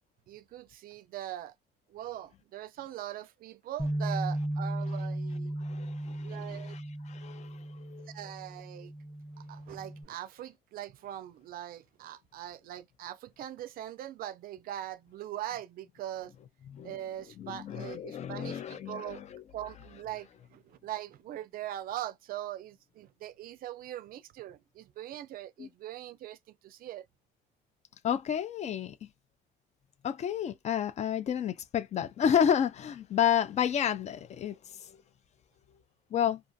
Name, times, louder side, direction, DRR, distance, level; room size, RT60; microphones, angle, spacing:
voice 1, 0.3-1.5 1.9-5.5 6.2-6.8 8.1-8.9 9.4-16.3 16.8-19.2 19.5-27.1, right 12 dB, 60° right, 0.4 m, -41 dB
Bass guitar, 3.8-10.0, right 1 dB, 5° left, 0.7 m, -36 dB
voice 2, 5.6-6.8 7.1-8.1 16.7-16.9 17.4-19.4 25.6-25.7 28.0-29.1 30.0-34.5 34.8-34.9 36.1-36.4, left 9 dB, 40° left, 0.4 m, -31 dB
2.4 x 2.4 x 2.5 m
cardioid pair, 110°, 17 cm